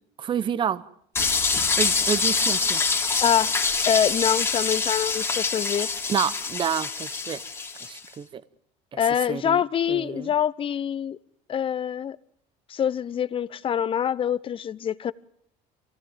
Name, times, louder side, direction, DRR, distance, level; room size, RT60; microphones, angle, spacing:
voice 1, 0.2-0.8 1.8-2.8 6.1-7.4 7.9-8.4 8.9-9.0 9.3-9.6 9.9-10.3, right 8 dB, 30° right, 0.8 m, -28 dB
sound 1, 1.1-8.0, left 4 dB, 15° left, 3.0 m, -25 dB
voice 2, 3.2-3.6 3.9-5.9 9.0-11.2 11.5-12.2 12.7-15.1, left 9 dB, 35° left, 0.9 m, -25 dB
24.5 x 17.0 x 9.1 m
supercardioid pair, 120°, 16 cm